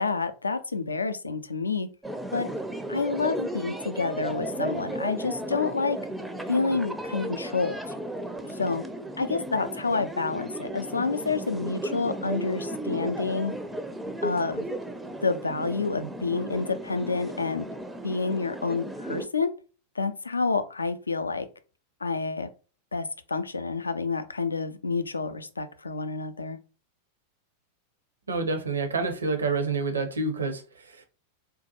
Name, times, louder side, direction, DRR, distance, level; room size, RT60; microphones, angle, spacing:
voice 1, 0.0-1.9 2.3-2.5 2.9-6.0 6.5-7.8 8.5-8.8 9.2-13.5 14.2-14.7 15.2-17.7 18.0-19.5 20.0-21.5 22.0-22.5 22.9-26.6, left 4 dB, 80° left, 0.3 m, -28 dB
sound 1, 2.0-19.3, right 1 dB, 5° right, 0.4 m, -35 dB
voice 2, 28.3-31.0, right 3 dB, 75° right, 0.6 m, -28 dB
3.8 x 2.2 x 2.8 m
figure-of-eight pair, 90°, 0 cm